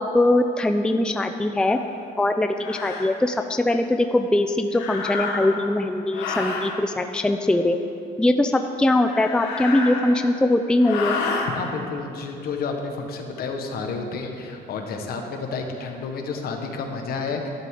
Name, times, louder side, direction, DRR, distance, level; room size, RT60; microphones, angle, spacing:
voice 1, 0.0-1.8 2.2-7.8 8.2-11.2, left 1 dB, 5° left, 6 dB, 0.4 m, -21 dB
sound 1, 1.7-1.8 2.6-3.1 4.7-5.7 6.1-6.7 8.9-10.4 10.8-11.5, left 4 dB, 90° left, 1.5 m, -29 dB
voice 2, 11.4-17.5, left 4 dB, 65° left, 3 dB, 1.4 m, -30 dB
12.0 x 11.5 x 3.8 m, 2.6 s
cardioid pair, 110°, 17 cm